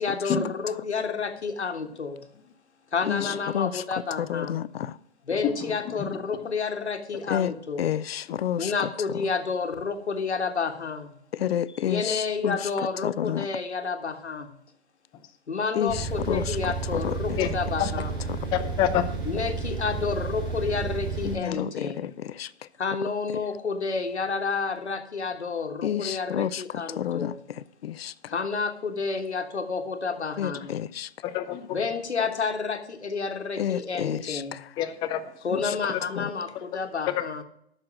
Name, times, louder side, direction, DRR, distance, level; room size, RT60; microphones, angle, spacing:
voice 1, 0.0-2.3 2.9-4.6 5.2-7.9 8.6-11.2 11.8-14.5 15.5-18.2 19.2-22.1 22.8-27.4 28.3-30.8 31.7-34.6 35.4-37.4, left 4 dB, 90° left, 1.4 m, -30 dB
voice 2, 4.2-5.0 7.3-7.5 7.8-8.7 11.3-12.6 13.0-13.5 15.7-16.6 16.9-17.4 21.2-22.5 25.8-26.6 27.0-27.3 27.8-28.1 30.4-31.1 33.6-34.6 35.5-35.6 36.2-36.3, left 10 dB, 65° left, 0.5 m, -29 dB
sound 1, 15.9-21.4, right 4 dB, 45° right, 4.3 m, -32 dB
voice 3, 18.5-19.0 31.2-31.6 34.8-35.2, left 11 dB, 15° left, 0.5 m, -26 dB
8.5 x 6.6 x 7.3 m
hypercardioid pair, 130°, 33 cm